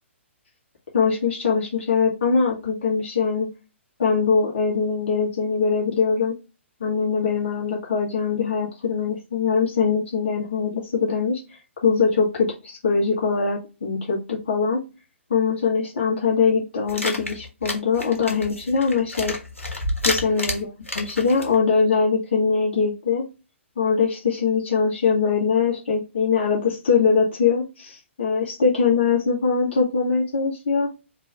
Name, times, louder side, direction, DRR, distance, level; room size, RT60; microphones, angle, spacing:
voice 1, 0.9-3.5 4.0-6.3 6.8-11.4 11.8-14.8 15.3-19.3 20.0-23.2 23.8-30.9, left 5 dB, 55° left, -3 dB, 2.0 m, -22 dB
sound 1, 16.9-21.6, left 1 dB, 90° left, 1.4 m, -30 dB
4.4 x 3.1 x 3.5 m, 0.29 s
figure-of-eight pair, 125°, 7 cm